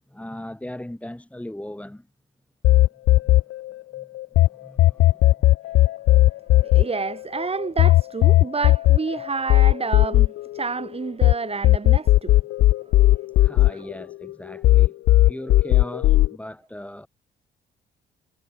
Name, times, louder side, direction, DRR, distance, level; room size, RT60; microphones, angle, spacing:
voice 1, 0.0-2.1 3.2-3.4 3.9-4.1 4.4-5.3 8.4-8.5 13.4-15.0 15.3-17.1, left 1 dB, 5° left, 3.0 m, -38 dB
sound 1, 2.6-4.5 4.8-11.3 11.6-14.3 14.6-16.3, left 16 dB, 85° left, 0.7 m, -16 dB
voice 2, 6.6-12.4 13.7-13.8, right 4 dB, 30° right, 3.4 m, -29 dB
cardioid pair, 90°, 20 cm